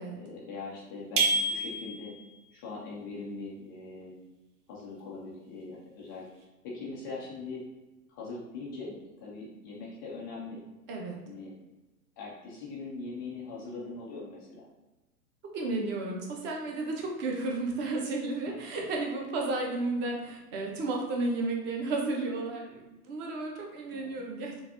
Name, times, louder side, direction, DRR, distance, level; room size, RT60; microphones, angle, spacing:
voice 1, 0.2-2.1 2.5-4.2 4.7-6.2 6.6-7.6 8.1-10.6 11.3-11.5 12.2-14.7 23.9-24.2, left 3 dB, 15° left, -5 dB, 0.4 m, -41 dB
sound 1, 1.2-2.3, right 2 dB, 50° right, 1.0 m, -28 dB
voice 2, 10.9-11.2 15.5-24.6, right 2 dB, 25° right, 0 dB, 0.8 m, -33 dB
5.9 x 2.6 x 2.5 m, 1.1 s
figure-of-eight pair, 110°, 47 cm